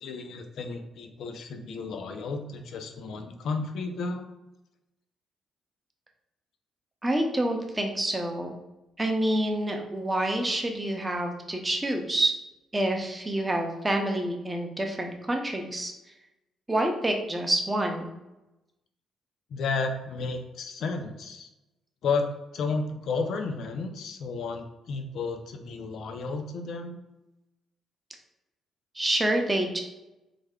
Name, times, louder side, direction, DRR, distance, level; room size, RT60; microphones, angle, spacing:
voice 1, 0.0-4.3 19.5-21.5 22.0-22.2 22.5-27.0, left 4 dB, 70° left, 5 dB, 0.4 m, -32 dB
voice 2, 7.0-8.5 9.0-12.3 12.7-15.9 16.7-18.1 29.0-29.8, right 1 dB, 15° right, 2 dB, 0.6 m, -27 dB
3.3 x 2.1 x 3.5 m, 0.96 s
cardioid pair, 90°, 0 cm